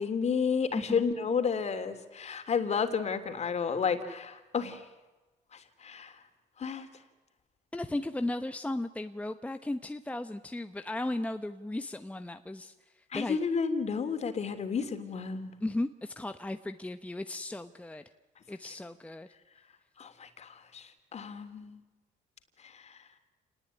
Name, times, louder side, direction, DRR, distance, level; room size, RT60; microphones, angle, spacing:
voice 1, 0.0-4.8 5.8-6.1 6.6-6.9 13.1-15.5 20.0-21.8 22.7-22.9, left 6 dB, 40° left, 8 dB, 3.3 m, -31 dB
voice 2, 0.7-1.0 7.7-12.7 13.1-13.4 15.6-18.0 18.5-19.3, left 1 dB, 10° left, 8 dB, 1.0 m, -35 dB
28.5 x 19.5 x 9.9 m, 1.2 s
cardioid pair, 110°, 17 cm